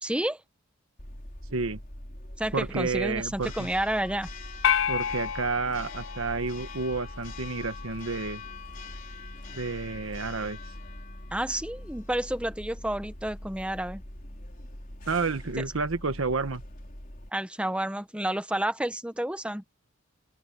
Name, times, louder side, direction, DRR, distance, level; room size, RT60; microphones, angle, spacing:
voice 1, 0.0-0.4 2.4-4.3 11.3-14.0 17.3-19.6, right 1 dB, 5° right, 1.1 m, -30 dB
Church bell, 1.0-17.3, left 1 dB, 45° left, 3.9 m, -42 dB
voice 2, 1.5-1.8 2.5-3.7 4.9-8.4 9.5-10.6 15.1-16.6, right 4 dB, 80° right, 1.2 m, -30 dB
sound 1, 4.6-7.1, left 9 dB, 60° left, 0.4 m, -29 dB
open air
head